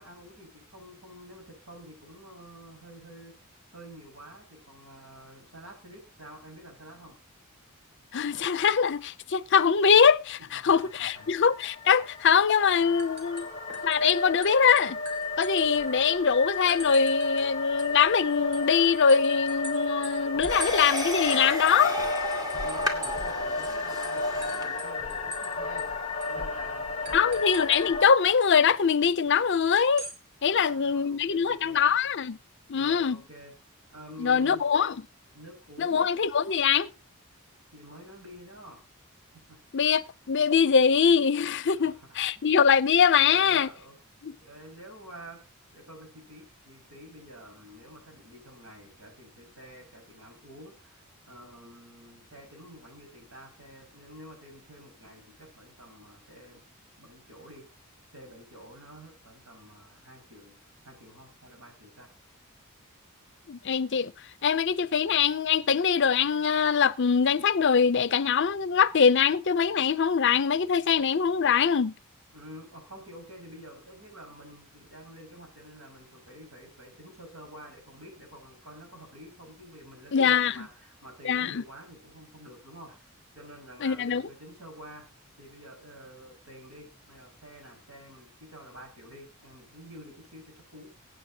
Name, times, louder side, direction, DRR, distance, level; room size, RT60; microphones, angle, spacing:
voice 1, 0.0-3.3 3.7-7.2 10.5-11.3 22.5-25.9 26.2-27.4 30.4-32.0 32.7-33.5 33.9-34.6 35.2-36.1 37.7-38.8 39.5-39.6 41.7-42.4 43.1-44.0 44.4-45.4 45.7-56.6 57.0-57.6 58.1-60.6 60.8-62.1 72.3-85.1 85.4-90.9, equal, 80° right, 5.9 m, -49 dB
voice 2, 8.1-13.5 13.8-15.0 15.4-22.0 27.1-30.1 30.4-32.4 32.7-33.2 34.2-35.0 35.8-36.9 39.7-43.7 44.2-44.4 63.5-64.1 64.4-71.9 80.1-80.7 81.2-81.6 83.8-84.2, left 6 dB, 55° left, 0.5 m, -23 dB
sound 1, 10.7-28.1, left 2 dB, 30° left, 1.0 m, -33 dB
sound 2, 12.1-12.4 12.7-14.1 14.4-16.1 16.7-17.5 17.8-23.3 23.6-23.7 24.0-25.5 25.8-25.9 26.2-26.4 27.0-27.8 29.8-30.2, right 2 dB, 55° right, 2.7 m, -43 dB
sound 3, 20.5-24.8, left 1 dB, 20° right, 2.2 m, -33 dB
23.0 x 8.8 x 2.8 m
head